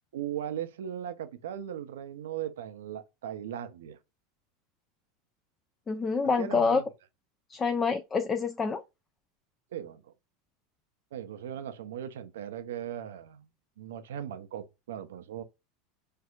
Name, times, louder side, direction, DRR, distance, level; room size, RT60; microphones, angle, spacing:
voice 1, 0.1-4.0 6.2-6.8 9.7-10.0 11.1-13.4 13.8-15.4, right 10 dB, 85° right, 0.5 m, -38 dB
voice 2, 5.9-6.8 7.5-8.8, left 5 dB, 25° left, 0.4 m, -27 dB
4.5 x 2.4 x 2.3 m
hypercardioid pair, 105°, 0 cm